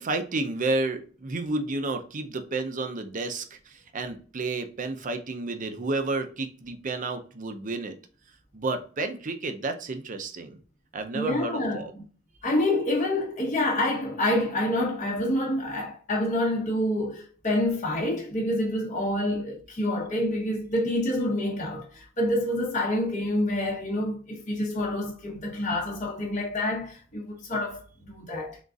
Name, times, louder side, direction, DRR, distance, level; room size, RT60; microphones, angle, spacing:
voice 1, 0.0-7.9 8.5-10.6 10.9-11.9, right 2 dB, 40° right, 0.6 m, -31 dB
voice 2, 11.1-12.0 12.4-28.6, left 1 dB, 40° left, 0.9 m, -27 dB
3.9 x 3.6 x 2.4 m
head